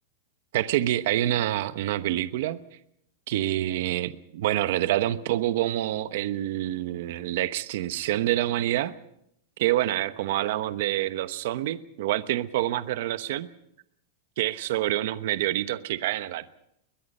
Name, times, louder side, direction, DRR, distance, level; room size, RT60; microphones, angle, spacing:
voice 1, 0.5-2.6 3.3-8.9 9.6-13.5 14.4-16.5, right 14 dB, 55° right, 12 dB, 1.0 m, -27 dB
22.5 x 21.0 x 5.5 m, 0.77 s
supercardioid pair, 170°, 0 cm